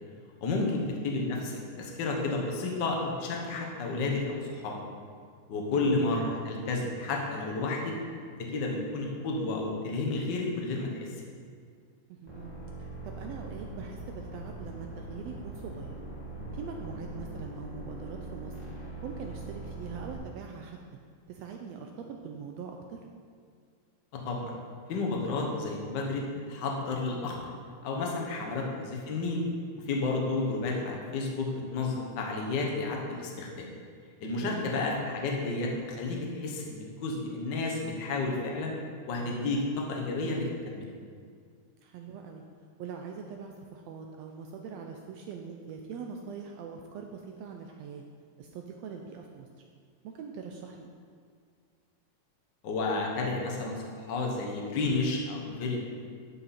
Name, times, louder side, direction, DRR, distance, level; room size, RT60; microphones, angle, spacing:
voice 1, 0.4-4.8 5.5-7.9 8.5-11.1 24.1-24.5 24.9-27.4 27.8-29.4 29.8-33.7 34.2-38.7 39.1-40.9 52.6-55.8, left 3 dB, 55° left, 0 dB, 1.2 m, -31 dB
voice 2, 5.7-6.0 12.1-12.5 12.8-16.0 16.5-18.6 19.0-20.8 21.3-23.0 28.4-28.7 34.4-34.7 41.8-42.4 42.8-48.0 48.4-49.5 50.0-50.9, right 6 dB, 85° right, 3 dB, 1.5 m, -42 dB
sound 1, 12.3-20.2, right 2 dB, 15° left, 1.8 m, -41 dB
11.5 x 5.6 x 4.2 m, 2.1 s
omnidirectional pair, 3.5 m